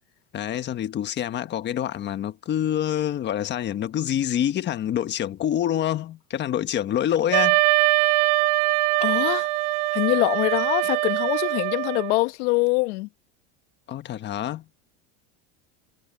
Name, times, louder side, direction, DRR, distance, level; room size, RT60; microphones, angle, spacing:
voice 1, 0.3-7.6 13.9-14.6, left 10 dB, 30° left, 1.3 m, -26 dB
Wind instrument woodwind instrument, 7.3-12.2, right 21 dB, 90° right, 0.8 m, -22 dB
voice 2, 9.0-9.5 9.9-13.1, left 23 dB, 75° left, 1.2 m, -24 dB
supercardioid pair, 145°, 35 cm